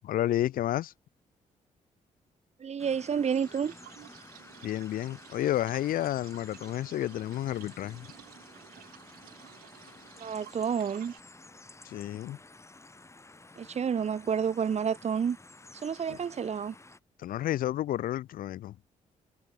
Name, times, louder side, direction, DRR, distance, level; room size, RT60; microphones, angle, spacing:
voice 1, 0.0-0.9 4.6-8.1 11.8-12.4 16.1-16.2 17.2-18.7, left 13 dB, 80° left, 1.0 m, -31 dB
voice 2, 2.6-3.7 10.2-11.1 13.6-15.4 15.8-16.7, right 7 dB, 50° right, 1.1 m, -30 dB
sound 1, 2.8-17.0, left 2 dB, 20° left, 2.1 m, -52 dB
sound 2, 3.2-11.2, right 15 dB, 90° right, 1.8 m, -53 dB
supercardioid pair, 65°, 14 cm